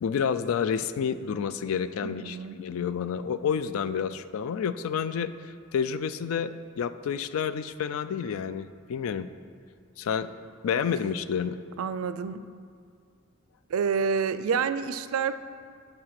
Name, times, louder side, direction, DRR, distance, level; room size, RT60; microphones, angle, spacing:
voice 1, 0.0-9.3 10.0-10.3 10.6-11.6, left 7 dB, 80° left, 13 dB, 0.4 m, -29 dB
voice 2, 2.0-2.6 11.8-12.4 13.7-15.4, right 6 dB, 85° right, 13 dB, 0.4 m, -28 dB
10.0 x 4.4 x 5.8 m, 2.3 s
head